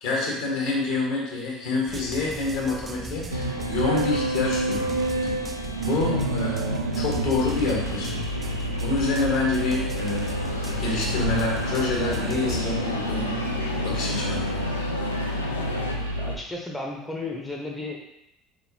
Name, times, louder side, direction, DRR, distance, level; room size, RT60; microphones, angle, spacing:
voice 1, 0.0-4.9 5.8-8.2 8.8-10.3 10.8-13.5 13.8-14.6, left 3 dB, 60° left, -2 dB, 1.2 m, -27 dB
sound 1, 1.9-12.6, right 3 dB, 25° right, 0.4 m, -39 dB
sound 2, 3.3-16.4, right 1 dB, 90° right, 0.4 m, -29 dB
sound 3, 8.5-16.0, left 2 dB, 85° left, 0.4 m, -33 dB
voice 2, 16.2-18.0, left 2 dB, 10° left, -1 dB, 0.7 m, -34 dB
4.2 x 3.4 x 2.7 m, 0.83 s
figure-of-eight pair, 60°, 0 cm